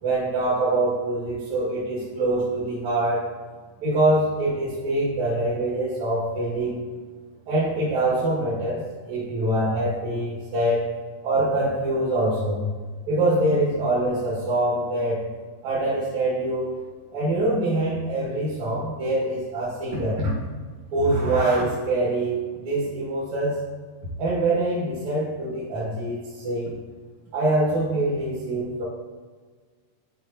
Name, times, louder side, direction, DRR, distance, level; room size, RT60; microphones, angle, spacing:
voice 1, 0.0-3.3 3.8-6.8 7.5-10.9 11.2-12.6 13.1-15.3 15.6-16.8 17.1-20.3 20.9-23.6 24.2-26.8 27.3-28.8, right 1 dB, 65° right, -9 dB, 3.1 m, -24 dB
12.0 x 4.7 x 2.9 m, 1.5 s
omnidirectional pair, 3.6 m